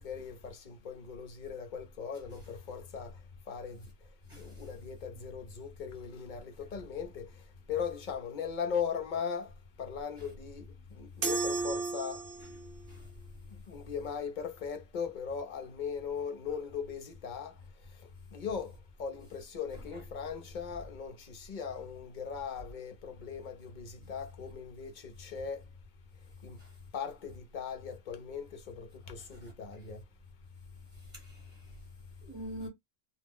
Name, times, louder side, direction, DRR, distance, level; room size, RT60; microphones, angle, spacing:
voice 1, 0.0-3.1 3.5-3.9 4.4-7.3 7.7-9.5 9.8-12.2 13.7-17.5 18.3-25.6 26.4-26.6 26.9-30.0, left 6 dB, 50° left, 0.6 m, -39 dB
sound 1, 11.2-12.7, right 3 dB, 55° right, 0.7 m, -33 dB
voice 2, 31.1-31.6 32.2-32.7, equal, 35° right, 1.2 m, -44 dB
2.4 x 2.0 x 3.5 m
omnidirectional pair, 1.3 m